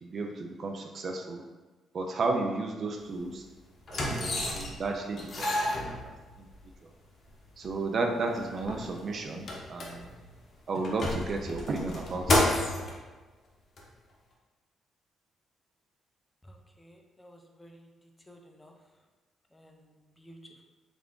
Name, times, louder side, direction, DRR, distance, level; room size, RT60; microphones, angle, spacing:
voice 1, 0.0-1.4 1.9-3.4 3.9-6.1 6.4-6.5 7.6-10.1 10.7-12.4, right 3 dB, 50° right, 2 dB, 0.4 m, -33 dB
sound 1, 3.0-3.2 3.8-4.9 5.2-6.5 7.3-7.4 7.6-7.7 8.2-10.3 10.7-12.9 13.8-13.9, left 1 dB, 45° left, 0.8 m, -30 dB
voice 2, 16.5-17.9 18.3-18.7 19.5-20.4, equal, 15° left, 2 dB, 0.5 m, -54 dB
3.3 x 2.5 x 3.6 m, 1.3 s
cardioid pair, 90°, 0 cm